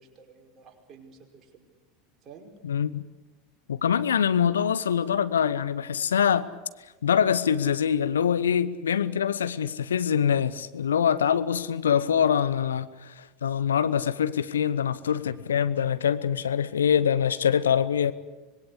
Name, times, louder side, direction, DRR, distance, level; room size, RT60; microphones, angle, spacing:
voice 1, 0.0-1.7 2.2-2.6, right 5 dB, 35° right, 2 dB, 5.2 m, -51 dB
voice 2, 2.6-3.0 3.7-6.5 7.0-18.1, left 8 dB, 75° left, 15 dB, 0.9 m, -24 dB
25.5 x 21.0 x 8.2 m, 1.2 s
figure-of-eight pair, 80°, 0 cm